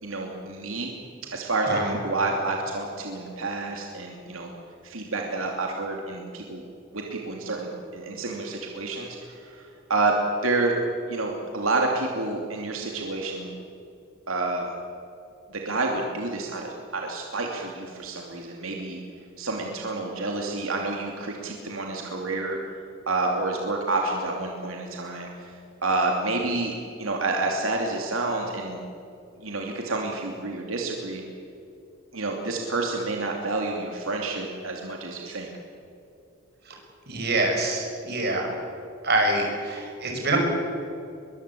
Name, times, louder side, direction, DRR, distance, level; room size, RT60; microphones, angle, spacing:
voice 1, 0.0-0.9 1.3-4.5 4.8-6.6 6.9-10.1 10.4-10.7 11.1-13.5 14.3-14.7 15.5-19.0 19.4-22.6 23.1-26.7 27.0-28.8 29.4-31.2 32.1-35.5, right 3 dB, 85° right, 1 dB, 2.8 m, -29 dB
voice 2, 37.1-38.6 39.0-40.4, right 2 dB, 50° right, 2 dB, 6.2 m, -25 dB
23.0 x 22.5 x 8.5 m, 2.6 s
head